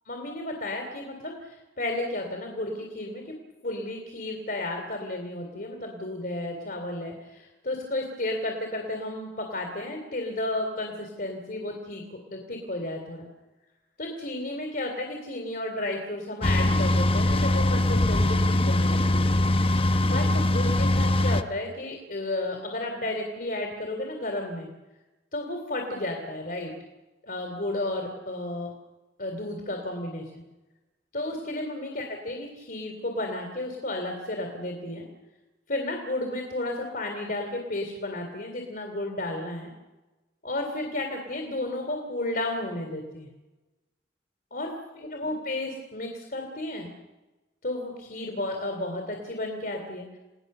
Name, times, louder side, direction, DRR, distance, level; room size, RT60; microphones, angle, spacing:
voice 1, 0.1-3.3 3.6-13.3 14.0-19.3 20.0-24.7 25.3-26.7 27.2-28.7 29.2-30.4 31.1-35.1 35.7-39.7 40.4-43.3 44.5-46.9 47.6-50.2, left 1 dB, 55° left, 2 dB, 3.3 m, -33 dB
sound 1, 16.4-21.4, left 1 dB, 30° left, 0.8 m, -22 dB
29.5 x 19.0 x 6.8 m, 1.1 s
head